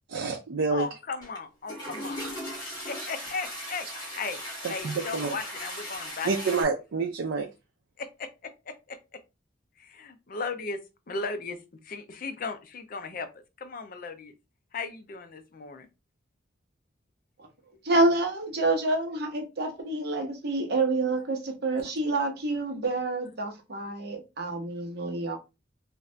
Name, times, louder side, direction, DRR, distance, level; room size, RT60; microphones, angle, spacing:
voice 1, 0.1-0.9 4.6-5.3 6.2-7.5, right 4 dB, 80° right, 0.5 m, -28 dB
voice 2, 0.7-2.3 2.9-3.9 4.2-4.4 4.7-6.5 8.0-9.2 9.8-10.8 11.1-11.6 11.8-13.3 13.6-14.3 14.7-15.9, left 4 dB, 45° left, 0.5 m, -36 dB
Toilet flush, 1.2-1.4 1.6-6.6, equal, 20° left, 1.2 m, -38 dB
voice 3, 17.8-25.4, right 2 dB, 55° right, 0.8 m, -28 dB
2.6 x 2.4 x 3.2 m
head